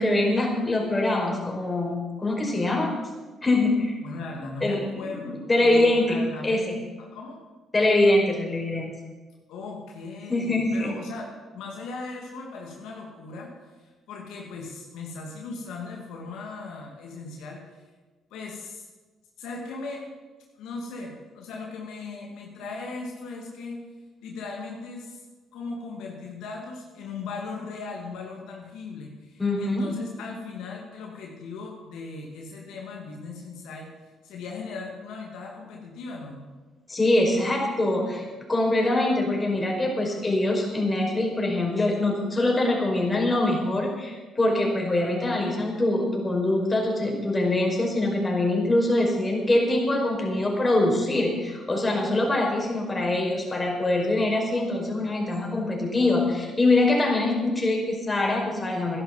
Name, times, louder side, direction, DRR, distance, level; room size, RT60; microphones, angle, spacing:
voice 1, 0.0-2.9 3.4-4.0 4.6-4.8 5.2-6.8 7.7-8.9 10.3-10.9 29.4-29.9 36.9-38.2 38.5-59.0, left 2 dB, 25° left, 0 dB, 5.3 m, -24 dB
voice 2, 4.0-6.6 7.0-7.4 9.5-13.5 13.8-17.8 18.3-18.9 19.4-20.0 20.6-23.8 24.2-25.2 25.5-33.9 34.2-36.4, left 3 dB, 75° left, -1 dB, 2.5 m, -38 dB
14.0 x 11.0 x 7.4 m, 1.3 s
supercardioid pair, 60°, 0 cm